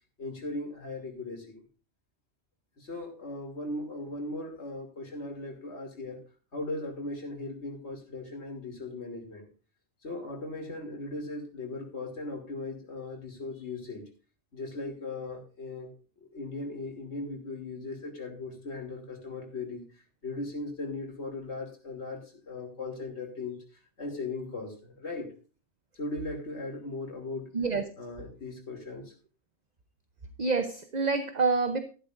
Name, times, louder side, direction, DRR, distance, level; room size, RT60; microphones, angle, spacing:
voice 1, 0.2-1.6 2.8-6.2 6.5-9.4 10.0-14.0 14.5-15.9 16.2-19.8 20.2-23.6 24.0-25.3 26.0-27.5 28.0-29.1, left 2 dB, 70° left, 2 dB, 3.1 m, -38 dB
voice 2, 27.5-27.9 30.4-31.8, right 4 dB, 40° right, 8 dB, 0.9 m, -27 dB
13.5 x 12.0 x 2.6 m, 0.36 s
omnidirectional pair, 1.2 m